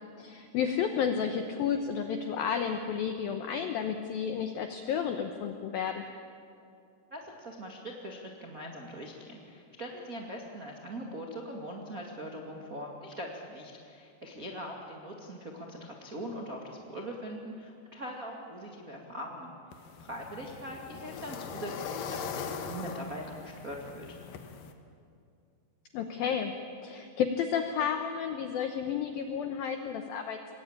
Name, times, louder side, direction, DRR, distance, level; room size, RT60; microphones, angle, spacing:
voice 1, 0.2-6.1 25.9-26.5 26.8-30.4, left 7 dB, 85° left, 6 dB, 2.1 m, -31 dB
voice 2, 7.1-19.5 20.0-24.2, equal, 75° right, -1 dB, 0.7 m, -41 dB
sound 1, 19.7-24.7, left 6 dB, 65° left, 2.3 m, -41 dB
26.5 x 21.5 x 8.9 m, 2.4 s
omnidirectional pair, 5.6 m